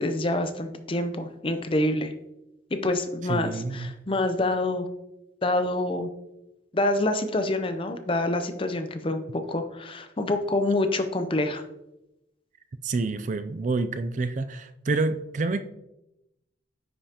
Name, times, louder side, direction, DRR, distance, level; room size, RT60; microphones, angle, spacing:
voice 1, 0.0-2.1 2.7-4.9 5.4-6.1 6.7-11.6, left 2 dB, 30° left, 0.6 m, -26 dB
voice 2, 3.3-3.9 12.8-15.6, right 3 dB, 40° right, 0.4 m, -28 dB
9.5 x 5.4 x 2.9 m
head